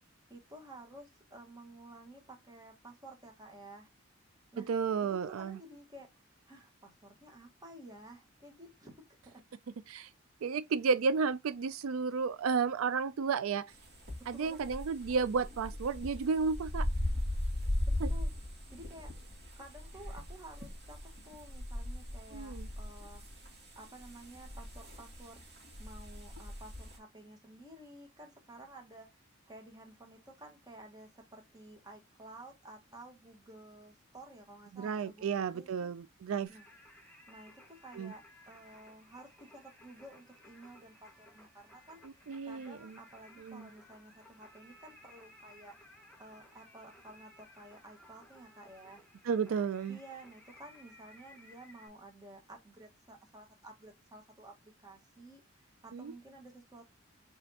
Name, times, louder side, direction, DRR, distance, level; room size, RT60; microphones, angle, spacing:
voice 1, 0.3-3.9 4.5-4.7 5.0-6.1 6.5-9.4 14.2-14.7 18.1-18.3 18.7-19.1 19.6-23.2 23.7-25.4 25.8-29.2 29.5-35.9 36.5-36.6 37.3-45.7 46.2-49.0 49.9-56.9, right 1 dB, 20° right, 1.5 m, -53 dB
voice 2, 4.6-5.6 9.9-10.1 10.4-13.7 14.3-16.9 18.0-18.1 22.3-22.7 34.7-36.5 38.0-38.1 42.0-43.0 43.4-43.7 49.2-50.0 55.9-56.1, right 5 dB, 80° right, 0.4 m, -32 dB
sound 1, 13.7-27.0, left 1 dB, 55° right, 2.2 m, -39 dB
Singing, 36.5-51.9, left 1 dB, 5° left, 1.7 m, -59 dB
5.1 x 3.5 x 2.8 m
head